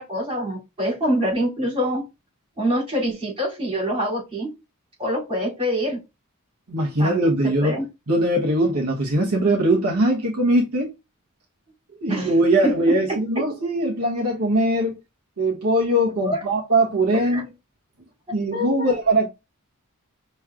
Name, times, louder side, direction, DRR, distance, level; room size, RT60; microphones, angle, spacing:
voice 1, 0.0-2.0 2.6-4.5 5.0-6.0 7.0-7.3 7.6-7.9 12.1-12.3 12.6-12.7 16.2-16.4 17.3-17.4 18.5-19.0, equal, 25° right, 2.9 m, -25 dB
voice 2, 6.7-7.8 8.1-10.9 12.0-15.0 15.4-17.5 18.3-19.3, right 1 dB, 85° right, 1.1 m, -21 dB
5.8 x 3.1 x 2.4 m
head